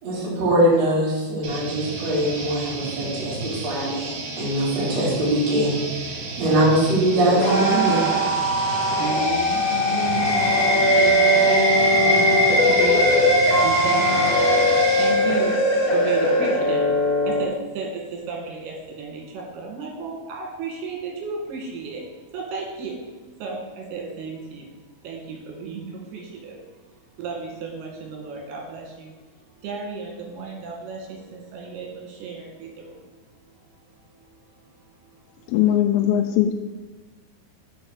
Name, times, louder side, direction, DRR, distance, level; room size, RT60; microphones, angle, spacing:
voice 1, 0.0-8.1, right 1 dB, 45° right, -7 dB, 3.8 m, -22 dB
sound 1, 1.4-15.1, right 3 dB, 65° right, 3.1 m, -33 dB
sound 2, 7.1-17.5, left 1 dB, 55° left, 2.3 m, -21 dB
voice 2, 7.9-23.0 23.3-24.8 25.0-33.1 33.4-35.5, right 5 dB, 80° right, -1 dB, 3.9 m, -34 dB
sound 3, 9.4-15.9, equal, 15° right, 0.7 m, -22 dB
voice 3, 35.5-36.5, left 11 dB, 85° left, 4 dB, 2.5 m, -19 dB
6.8 x 5.6 x 6.4 m, 1.3 s
omnidirectional pair, 4.6 m